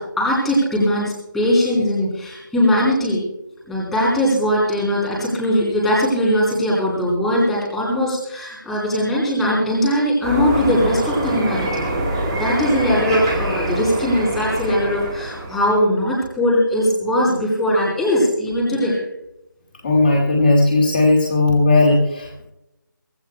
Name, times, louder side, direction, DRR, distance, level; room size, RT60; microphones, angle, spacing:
voice 1, 0.0-3.2 3.7-11.8 12.3-19.0, equal, ahead, -6 dB, 3.4 m, -20 dB
sound 1, 10.2-15.8, right 1 dB, 15° right, 2.1 m, -25 dB
voice 2, 19.8-22.5, left 2 dB, 25° left, 1 dB, 2.0 m, -16 dB
24.5 x 14.0 x 2.2 m, 0.86 s
figure-of-eight pair, 165°, 11 cm